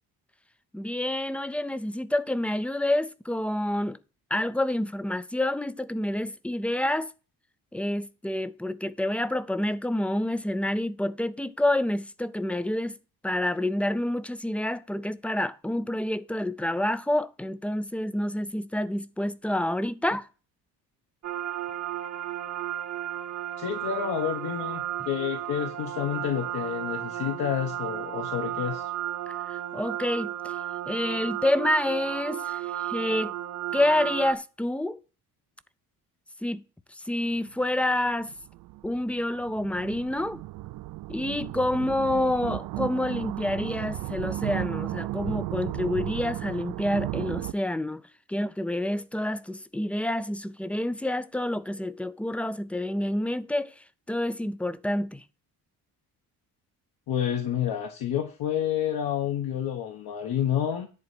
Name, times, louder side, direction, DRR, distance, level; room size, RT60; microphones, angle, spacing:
voice 1, 0.7-4.0 4.3-7.1 7.7-13.0 13.2-20.3 29.3-30.6 30.9-33.3 33.7-35.0 36.4-36.6 36.9-38.3 38.8-40.4 41.1-48.0 48.3-55.2, left 1 dB, 5° left, 0.4 m, -28 dB
sound 1, 21.2-34.4, right 12 dB, 45° right, 1.0 m, -34 dB
voice 2, 23.6-28.9 57.1-60.9, left 9 dB, 70° left, 1.5 m, -29 dB
sound 2, 37.2-37.4 38.1-47.5, right 17 dB, 65° right, 0.5 m, -34 dB
10.5 x 4.2 x 7.6 m
cardioid pair, 145°, 38 cm